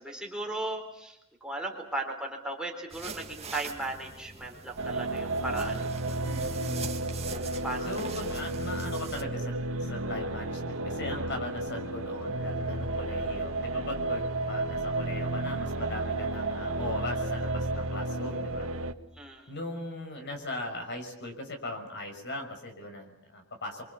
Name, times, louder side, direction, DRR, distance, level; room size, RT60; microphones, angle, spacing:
voice 1, 0.0-6.1 7.3-8.4 19.1-19.5, right 2 dB, 5° right, 1 dB, 4.0 m, -37 dB
sound 1, 2.9-9.2, right 5 dB, 30° right, 1.9 m, -43 dB
sound 2, 4.8-18.9, right 2 dB, 85° right, 1.7 m, -32 dB
voice 2, 6.2-6.9 7.8-18.7 19.5-23.9, left 2 dB, 60° left, 4 dB, 6.1 m, -39 dB
29.5 x 25.0 x 7.2 m, 0.81 s
head